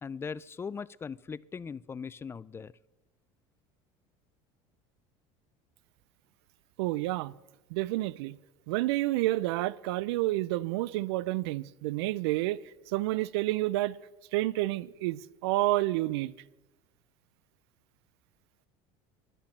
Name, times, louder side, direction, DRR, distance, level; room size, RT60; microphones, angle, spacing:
voice 1, 0.0-2.7, left 5 dB, 20° left, 0.3 m, -39 dB
voice 2, 6.8-7.3 7.7-8.4 8.7-12.6 12.9-14.0 14.3-16.3, right 17 dB, 90° right, 0.4 m, -29 dB
10.5 x 10.0 x 7.2 m
supercardioid pair, 105°, 13 cm